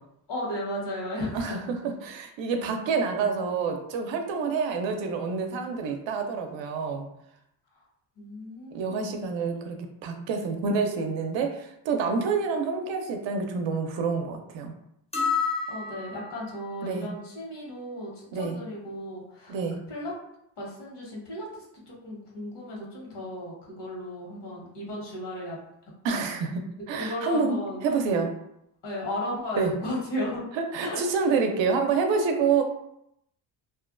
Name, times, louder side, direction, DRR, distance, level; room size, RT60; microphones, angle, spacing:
voice 1, 0.3-1.6 2.0-2.1 8.2-9.2 15.7-19.6 19.9-20.1 20.6-25.6 26.1-26.3 26.9-27.8 28.8-30.4 30.8-31.0, left 1 dB, 60° left, -3 dB, 1.2 m, -35 dB
voice 2, 1.3-7.1 8.7-9.8 10.0-14.7 16.8-17.1 18.3-18.6 19.5-19.8 26.0-28.3 29.6-29.7 30.5-32.6, right 5 dB, 70° right, 4 dB, 0.6 m, -27 dB
sound 1, 15.1-16.5, left 5 dB, 15° left, 0.4 m, -29 dB
2.5 x 2.1 x 2.5 m, 0.79 s
cardioid pair, 95°, 47 cm